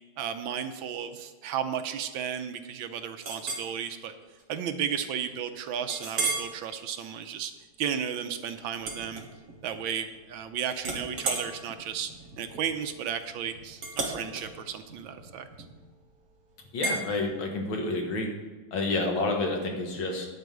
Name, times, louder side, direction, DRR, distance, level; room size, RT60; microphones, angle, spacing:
voice 1, 0.2-4.1 4.5-7.5 7.8-9.3 9.6-12.1 12.4-15.5, right 8 dB, 80° right, 8 dB, 1.5 m, -34 dB
Chink clink, 3.2-3.7 4.2-4.4 4.9-5.0 5.9-6.5 7.0-7.3 8.8-9.7 10.1-10.5 10.8-15.9 16.8-17.0, right 3 dB, 45° right, 2.0 m, -34 dB
voice 2, 16.7-18.3 18.7-20.3, left 2 dB, 80° left, 2 dB, 2.3 m, -29 dB
10.5 x 4.9 x 7.8 m, 1.3 s
omnidirectional pair, 2.2 m